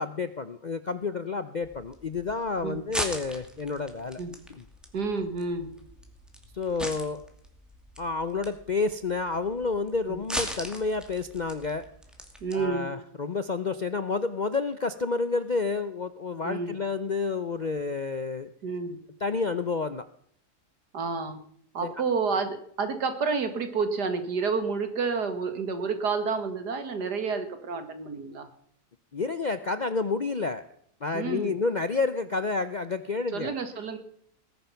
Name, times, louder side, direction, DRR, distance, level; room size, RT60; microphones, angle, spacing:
voice 1, 0.0-4.2 4.6-4.7 6.5-7.2 8.0-11.9 12.5-18.5 19.2-20.1 21.8-21.9 29.1-30.7 31.0-33.5, left 4 dB, 50° left, 11 dB, 0.5 m, -30 dB
sound 1, 1.6-12.7, equal, ahead, 2.4 m, -39 dB
voice 2, 4.9-5.7 10.1-10.2 12.4-12.9 16.4-16.7 18.6-19.0 20.9-21.4 21.7-28.5 31.1-31.6 33.3-34.0, right 4 dB, 85° right, 8 dB, 2.4 m, -29 dB
19.5 x 10.5 x 5.7 m, 0.66 s
omnidirectional pair, 1.7 m